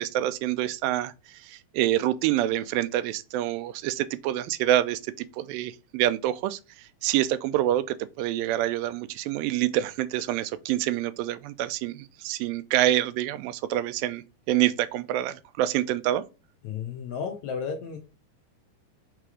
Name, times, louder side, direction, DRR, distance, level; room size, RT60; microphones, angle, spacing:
voice 1, 0.0-16.2, right 13 dB, 90° right, 2.3 m, -27 dB
voice 2, 16.6-18.0, left 6 dB, 70° left, 1.8 m, -33 dB
6.4 x 3.4 x 4.8 m
omnidirectional pair, 4.0 m